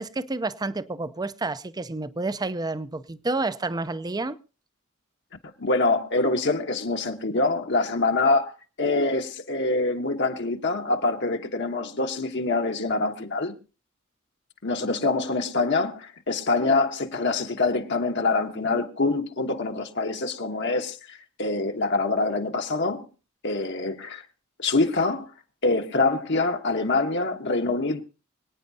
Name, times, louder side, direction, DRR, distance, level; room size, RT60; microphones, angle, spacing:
voice 1, 0.0-4.4, right 2 dB, 20° right, 0.5 m, -29 dB
voice 2, 5.6-8.5 8.8-13.5 14.6-23.1 23.4-24.2 24.6-25.3 25.6-28.0, left 3 dB, 60° left, 1.2 m, -25 dB
25.0 x 9.3 x 2.8 m
head